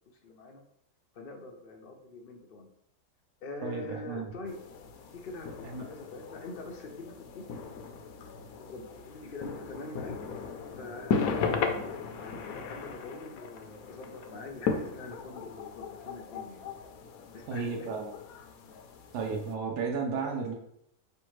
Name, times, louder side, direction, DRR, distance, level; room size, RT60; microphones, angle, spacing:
voice 1, 0.1-0.6 1.1-2.7 3.4-4.5 5.1-7.5 8.6-10.1 10.8-16.7 17.3-18.0 18.6-18.8, left 2 dB, 55° left, 1 dB, 0.6 m, -44 dB
voice 2, 3.6-4.3 5.7-5.9 17.5-18.2 19.1-20.5, right 4 dB, 80° right, 0 dB, 1.2 m, -33 dB
sound 1, 4.5-19.5, left 5 dB, 75° left, 1.0 m, -37 dB
5.0 x 3.4 x 3.1 m, 0.74 s
omnidirectional pair, 1.7 m